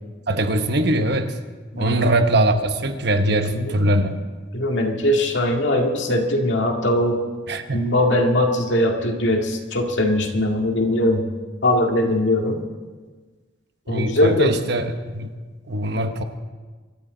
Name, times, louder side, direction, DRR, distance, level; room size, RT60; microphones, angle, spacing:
voice 1, 0.3-1.4 1.8-4.2 7.5-7.8 13.9-14.8 15.1-15.3 15.7-16.2, right 1 dB, 55° right, 7 dB, 1.1 m, -21 dB
voice 2, 1.7-2.1 3.3-4.1 4.5-7.2 7.7-11.2 11.6-12.6 13.9-14.6, left 1 dB, 65° left, 2 dB, 2.1 m, -21 dB
25.0 x 13.5 x 3.9 m, 1.4 s
head